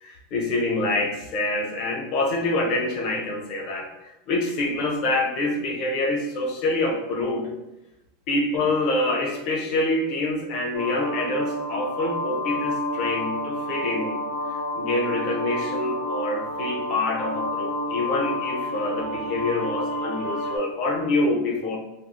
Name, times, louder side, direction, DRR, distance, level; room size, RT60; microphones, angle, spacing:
voice 1, 0.0-7.5 8.3-14.2 14.7-21.8, left 2 dB, 40° left, 1 dB, 0.6 m, -26 dB
sound 1, 10.7-20.6, left 1 dB, 65° left, 1.0 m, -30 dB
4.2 x 2.0 x 2.4 m, 0.95 s
supercardioid pair, 160°, 0 cm